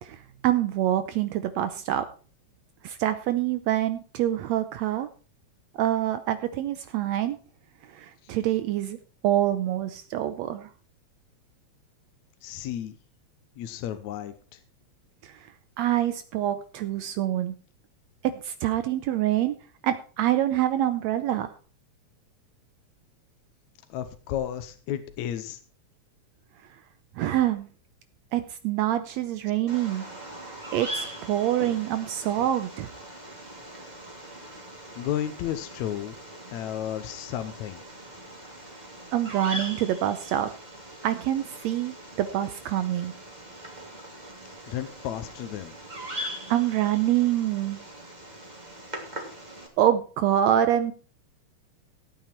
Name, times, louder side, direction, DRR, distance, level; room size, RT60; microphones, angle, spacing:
voice 1, 0.0-2.1 2.8-5.1 5.7-7.4 7.8-9.0 9.2-10.7 15.2-17.6 18.2-19.6 19.8-21.5 27.2-27.7 28.3-30.1 30.7-32.9 39.1-40.5 41.0-43.1 46.1-47.9 49.8-50.9, right 12 dB, 75° right, 11 dB, 1.9 m, -26 dB
voice 2, 12.4-13.0 13.6-14.6 23.9-25.6 34.4-34.6 35.0-36.2 36.5-37.8 44.7-45.7, left 11 dB, 80° left, 9 dB, 2.1 m, -33 dB
Bird vocalization bird call bird song, 29.7-49.7, right 1 dB, 15° right, 2.7 m, -41 dB
15.5 x 9.0 x 4.5 m, 0.39 s
omnidirectional pair, 3.3 m